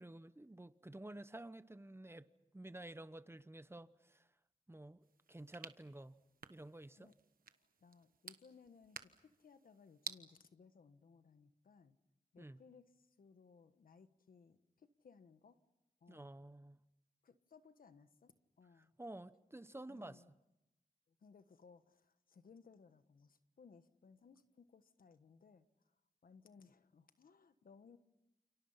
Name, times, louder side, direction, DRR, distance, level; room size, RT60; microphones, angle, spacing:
voice 1, 0.0-2.3 2.5-4.3 4.7-6.2 6.5-7.1 12.4-12.6 16.1-16.8 19.0-20.2, right 1 dB, 15° right, 1.0 m, -52 dB
sound 1, 5.0-10.2, right 6 dB, 85° right, 1.2 m, -54 dB
voice 2, 7.5-12.0 12.3-15.6 16.0-16.3 17.2-18.9 19.9-20.3 21.1-28.0, left 5 dB, 85° left, 1.4 m, -64 dB
29.5 x 28.5 x 5.8 m
cardioid pair, 65°, 15 cm